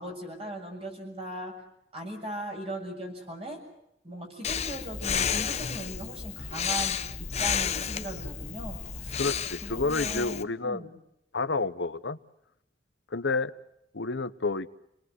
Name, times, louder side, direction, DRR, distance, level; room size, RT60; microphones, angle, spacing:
voice 1, 0.0-1.5 1.9-3.6 4.0-9.2 9.6-10.9, right 1 dB, 35° right, 2 dB, 7.2 m, -39 dB
Breathing, 4.4-10.4, left 7 dB, 35° left, 0.9 m, -31 dB
voice 2, 9.2-10.9 11.3-12.2 13.1-13.5 13.9-14.7, left 3 dB, 80° left, 13 dB, 0.9 m, -29 dB
28.5 x 20.5 x 8.0 m, 0.81 s
head